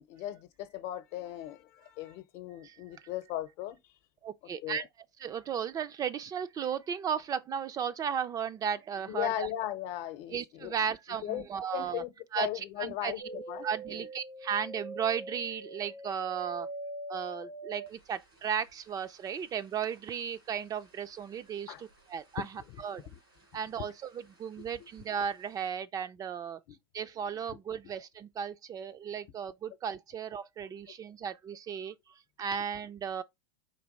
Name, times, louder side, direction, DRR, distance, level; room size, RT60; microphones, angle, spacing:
voice 1, 0.0-3.9 4.6-4.9 9.1-10.7 11.2-11.5 11.7-14.1 21.7-21.8 22.5-22.8 23.1-23.2 23.8-23.9 24.6-24.9 26.7-26.8 27.8-27.9 30.9-31.0, left 13 dB, 55° left, 0.8 m, -38 dB
voice 2, 4.2-4.8 5.2-9.5 10.3-12.0 12.3-12.5 12.8-16.7 17.1-21.7 22.1-22.4 22.8-23.0 23.5-26.6 26.9-32.0 32.4-33.2, right 7 dB, 30° right, 0.4 m, -35 dB
sound 1, 13.2-22.6 22.9-23.7 24.1-25.0 25.4-25.5, right 2 dB, 90° right, 2.6 m, -45 dB
4.5 x 2.9 x 3.9 m
hypercardioid pair, 90°, 12 cm